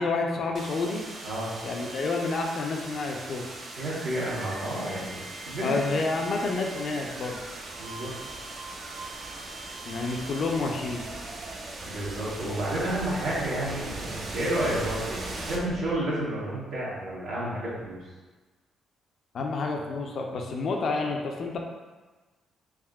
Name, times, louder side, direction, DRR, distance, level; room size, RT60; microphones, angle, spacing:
voice 1, 0.0-1.1 1.6-3.5 5.6-7.4 9.9-11.0 19.3-21.6, left 3 dB, 60° left, 1 dB, 0.4 m, -29 dB
sound 1, 0.5-16.4, right 2 dB, 50° right, 0.4 m, -39 dB
voice 2, 1.2-1.5 3.8-5.2 5.5-5.8 6.2-6.4 7.8-8.1 11.9-18.0, right 1 dB, 75° right, -8 dB, 1.1 m, -31 dB
3.5 x 2.5 x 2.3 m, 1.3 s
cardioid pair, 90°, 0 cm